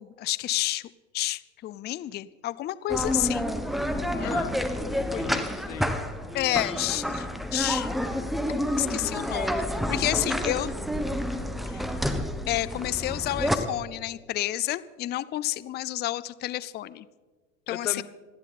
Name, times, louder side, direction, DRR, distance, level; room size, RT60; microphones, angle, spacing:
voice 1, 0.0-3.5 4.2-4.3 6.3-7.9 8.8-9.6 9.9-10.7 11.7-11.8 12.5-17.1 17.7-18.0, left 15 dB, 25° left, 18 dB, 0.5 m, -30 dB
sound 1, 2.9-13.6, equal, ahead, 1.2 m, -29 dB
voice 2, 4.2-4.6 4.9-6.0 17.7-18.0, left 10 dB, 90° left, 15 dB, 1.1 m, -37 dB
27.5 x 10.5 x 4.2 m, 1.3 s
hypercardioid pair, 105°, 38 cm